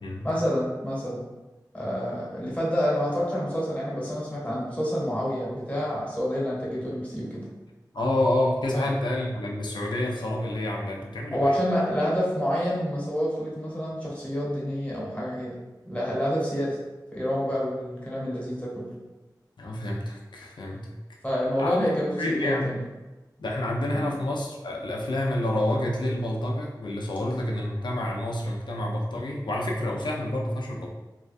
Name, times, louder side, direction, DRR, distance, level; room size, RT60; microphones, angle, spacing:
voice 1, 0.2-1.2 1.7-7.5 8.7-8.9 11.3-15.6 15.9-16.8 17.1-18.9 21.2-22.8 23.9-24.1, equal, 15° left, -6 dB, 0.9 m, -28 dB
voice 2, 7.9-11.6 19.6-20.9 21.6-22.8 23.4-30.9, left 1 dB, 80° left, -1 dB, 0.4 m, -28 dB
2.4 x 2.2 x 2.5 m, 1.1 s
wide cardioid pair, 40°, 8 cm